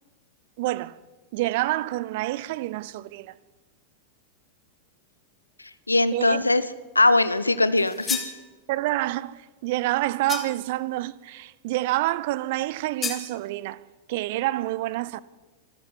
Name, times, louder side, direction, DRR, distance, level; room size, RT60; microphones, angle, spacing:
voice 1, 0.6-1.0 1.3-3.3 6.1-6.4 8.7-13.8 14.1-15.2, right 17 dB, 50° right, 0.8 m, -27 dB
voice 2, 5.9-6.6 6.9-8.2, left 2 dB, 80° left, 1.0 m, -20 dB
sound 1, 7.8-8.4 10.3-10.7 13.0-13.3, left 5 dB, 20° left, 3.0 m, -31 dB
25.0 x 14.0 x 8.2 m
figure-of-eight pair, 90°, 0 cm